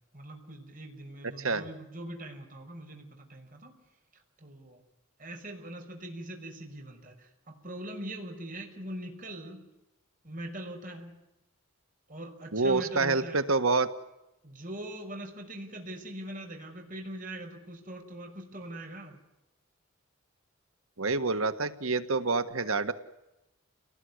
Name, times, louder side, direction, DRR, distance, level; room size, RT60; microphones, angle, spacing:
voice 1, 0.1-3.7 4.4-4.8 5.2-9.6 10.2-11.2 12.1-13.4 14.4-19.2, right 1 dB, 40° right, 3 dB, 5.7 m, -42 dB
voice 2, 12.5-13.9 21.0-22.9, right 3 dB, 80° right, 10 dB, 1.7 m, -27 dB
29.5 x 19.5 x 9.8 m, 0.93 s
head